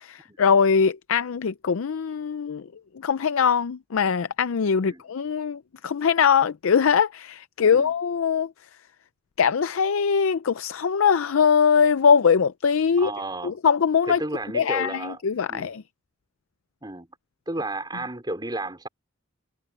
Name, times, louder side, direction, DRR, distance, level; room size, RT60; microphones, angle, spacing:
voice 1, 0.0-2.7 2.9-8.5 9.4-13.1 13.4-14.2 14.5-15.8, left 6 dB, 70° left, 0.5 m, -22 dB
voice 2, 13.0-13.5 14.1-15.2 15.5-15.7 16.8-17.1 17.5-18.9, right 2 dB, 20° right, 4.8 m, -32 dB
head